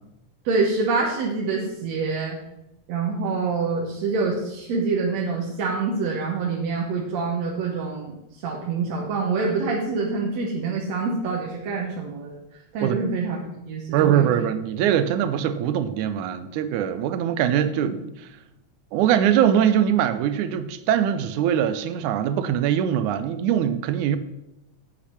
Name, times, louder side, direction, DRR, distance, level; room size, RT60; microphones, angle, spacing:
voice 1, 0.4-2.4 2.9-12.4 12.7-13.4 13.7-14.4, right 4 dB, 60° right, 2.3 m, -26 dB
voice 2, 13.9-18.3 18.9-24.2, right 9 dB, 80° right, 1.9 m, -22 dB
8.5 x 8.4 x 5.8 m
omnidirectional pair, 3.8 m